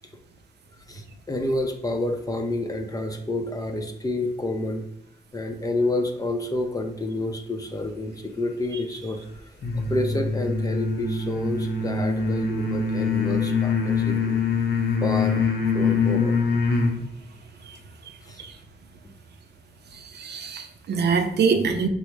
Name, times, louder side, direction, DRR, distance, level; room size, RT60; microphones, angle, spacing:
voice 1, 0.9-4.9 5.3-9.2 9.9-14.5 15.0-15.4 15.7-16.4 18.2-18.4, left 2 dB, 20° left, 4 dB, 0.5 m, -29 dB
sound 1, 9.6-17.0, left 4 dB, 80° left, 0.7 m, -24 dB
voice 2, 20.1-21.9, right 5 dB, 80° right, 6 dB, 0.5 m, -24 dB
5.3 x 2.0 x 4.5 m, 0.75 s
wide cardioid pair, 140°, 17 cm